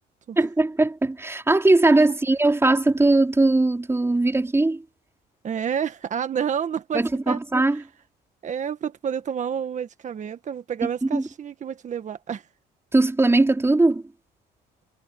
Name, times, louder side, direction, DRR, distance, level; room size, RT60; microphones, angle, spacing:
voice 1, 0.4-4.8 6.9-7.8 11.1-11.2 12.9-14.0, right 2 dB, 15° right, 4.7 m, -20 dB
voice 2, 5.4-7.4 7.7-7.8 8.4-12.5, right 8 dB, 45° right, 1.6 m, -29 dB
cardioid pair, 100°, 18 cm